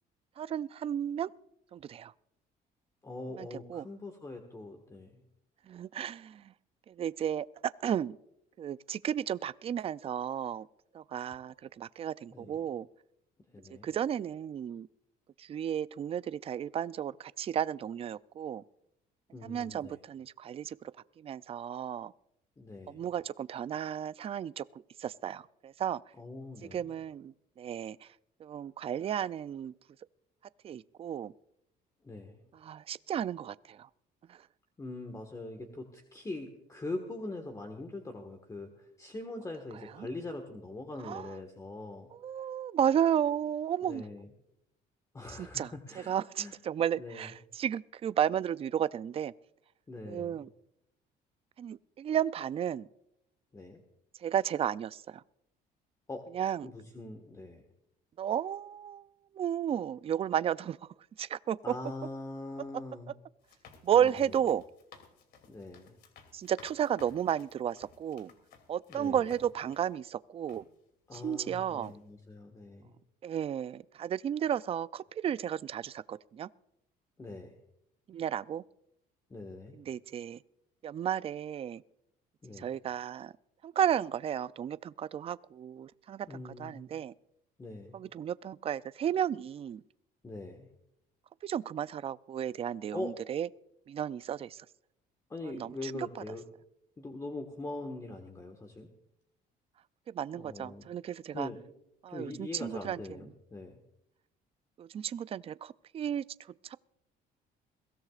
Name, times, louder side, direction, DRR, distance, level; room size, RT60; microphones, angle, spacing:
voice 1, 0.4-1.3 1.7-2.1 3.4-3.9 5.7-6.5 6.9-8.2 8.6-10.7 10.9-12.9 13.8-14.9 15.4-18.6 19.4-20.8 21.2-22.1 22.9-24.7 25.0-26.0 26.7-28.1 28.4-29.7 30.6-31.3 32.6-33.9 34.3-34.4 41.0-41.3 42.2-44.0 45.3-45.7 46.1-49.3 50.1-50.5 51.6-52.9 54.2-55.2 56.3-56.7 58.2-59.0 59.3-60.8 61.2-61.7 63.8-64.6 66.3-68.3 68.7-70.6 71.1-71.9 73.2-76.5 78.1-78.6 79.9-80.4 80.8-81.8 82.6-83.3 83.6-87.1 87.9-89.8 91.4-93.5 93.9-94.6 95.5-96.1 100.1-101.5 102.0-103.0 104.8-106.2 106.6-106.8, right 9 dB, 35° right, 17 dB, 0.4 m, -33 dB
voice 2, 3.0-5.2 12.3-12.7 13.5-13.9 19.3-20.0 22.6-23.1 26.2-26.9 32.0-32.4 34.8-42.1 43.3-43.4 43.8-44.3 45.1-46.5 47.0-47.3 49.9-50.4 53.5-53.8 56.1-56.2 56.6-57.6 61.6-63.1 63.9-64.3 65.5-66.0 68.9-69.3 71.1-72.9 77.2-77.6 79.3-79.8 82.4-82.8 86.3-86.9 87.6-88.0 90.2-90.7 92.9-93.1 95.3-96.4 97.0-98.9 100.3-100.9 101.3-101.6 102.1-103.8, left 2 dB, 20° left, 4 dB, 1.6 m, -42 dB
sound 1, 63.4-69.9 70.5-70.6 71.1-71.5 71.8-72.0, left 6 dB, 70° left, 2.9 m, -57 dB
22.0 x 16.5 x 2.5 m, 0.83 s
cardioid pair, 110°, 17 cm